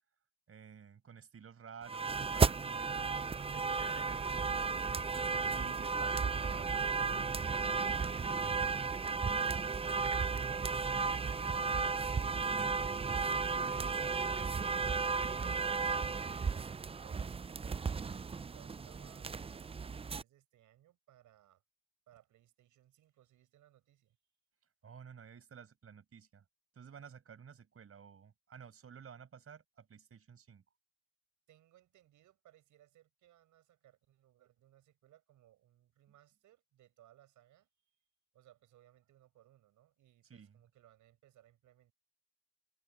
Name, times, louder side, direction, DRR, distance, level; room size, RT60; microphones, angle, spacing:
voice 1, 0.5-4.7 5.5-8.6 24.8-26.4 26.7-30.6 40.2-40.6, right 7 dB, 50° right, 5.6 m, -53 dB
sound 1, 1.9-20.2, right 5 dB, 20° right, 0.5 m, -34 dB
voice 2, 9.5-10.6 18.2-21.6 22.1-24.2 31.5-37.7 38.3-41.9, right 13 dB, 80° right, 5.0 m, -65 dB
cardioid pair, 90°, 30 cm